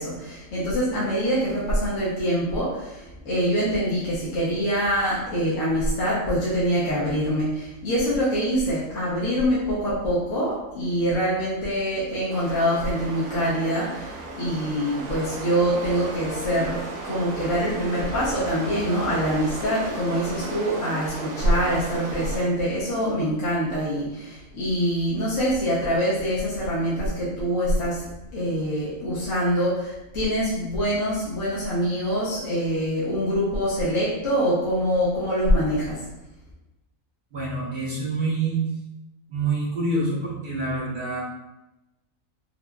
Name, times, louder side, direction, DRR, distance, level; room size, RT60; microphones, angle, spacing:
voice 1, 0.0-28.0 28.3-36.0, equal, 70° left, -9 dB, 1.2 m, -24 dB
sound 1, 12.3-22.4, right 2 dB, 60° right, 0.4 m, -35 dB
voice 2, 37.3-38.6 39.3-41.2, right 3 dB, 40° right, -6 dB, 1.2 m, -26 dB
5.4 x 2.4 x 2.3 m, 0.97 s
omnidirectional pair, 1.4 m